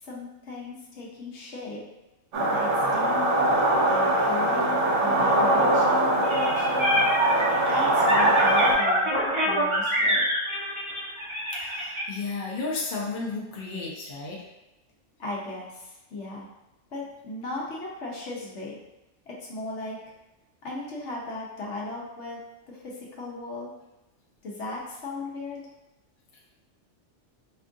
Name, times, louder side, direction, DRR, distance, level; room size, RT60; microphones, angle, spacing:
voice 1, 0.0-1.8 2.4-3.5 3.9-6.9 7.7-9.1 9.4-10.3 15.2-16.4 16.9-18.8 19.3-20.0 20.6-22.4 22.7-23.7 24.4-25.6, left 2 dB, 65° left, -3 dB, 1.0 m, -36 dB
sound 1, 2.3-8.7, right 1 dB, 75° right, 1.1 m, -22 dB
sound 2, 6.2-12.0, equal, 30° right, 0.8 m, -25 dB
voice 2, 11.5-14.4, left 3 dB, 50° left, -3 dB, 0.7 m, -33 dB
4.4 x 2.4 x 2.5 m, 0.99 s
omnidirectional pair, 1.3 m